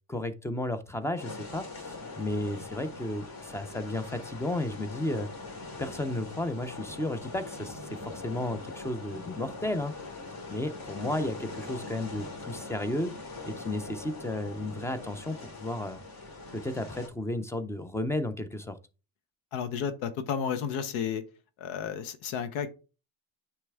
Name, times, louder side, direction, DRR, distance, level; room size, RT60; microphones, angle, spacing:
voice 1, 0.1-5.3 5.8-10.1 10.5-13.1 13.5-16.0 16.5-18.8, left 1 dB, 5° left, 12 dB, 0.3 m, -33 dB
sound 1, 1.2-17.1, left 3 dB, 50° left, 2.6 m, -42 dB
voice 2, 19.5-21.2 21.6-22.7, left 7 dB, 85° left, 12 dB, 0.9 m, -32 dB
9.4 x 3.3 x 3.4 m, 0.33 s
cardioid pair, 125°, 46 cm